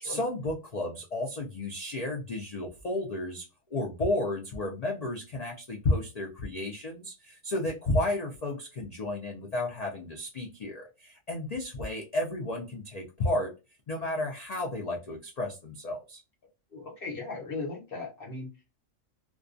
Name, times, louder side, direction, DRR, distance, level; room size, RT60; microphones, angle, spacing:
voice 1, 0.0-13.5 13.9-16.2, left 1 dB, 90° left, 0.3 m, -32 dB
voice 2, 16.7-18.5, left 3 dB, 50° left, 1.0 m, -37 dB
2.3 x 2.2 x 2.5 m
omnidirectional pair, 1.4 m